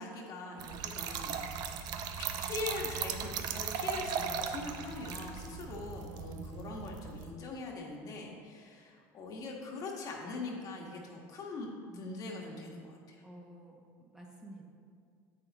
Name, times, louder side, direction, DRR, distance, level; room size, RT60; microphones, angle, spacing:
voice 1, 0.0-1.4 2.2-13.2, left 3 dB, 45° left, -1 dB, 1.5 m, -42 dB
Trickle dribble / Fill (with liquid), 0.6-7.3, right 7 dB, 55° right, 0.6 m, -38 dB
voice 2, 13.2-14.7, right 1 dB, 10° right, -2 dB, 1.1 m, -51 dB
9.7 x 7.8 x 3.0 m, 2.2 s
supercardioid pair, 110°, 8 cm